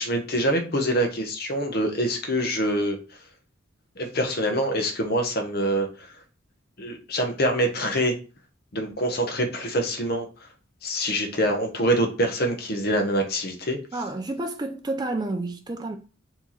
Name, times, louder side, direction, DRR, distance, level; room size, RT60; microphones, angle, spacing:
voice 1, 0.0-3.0 4.0-6.1 6.8-8.1 8.7-10.3 10.8-13.8, equal, 50° left, 0.9 m, -25 dB
voice 2, 13.9-16.0, right 2 dB, 20° right, 0.4 m, -30 dB
4.4 x 3.0 x 4.0 m
head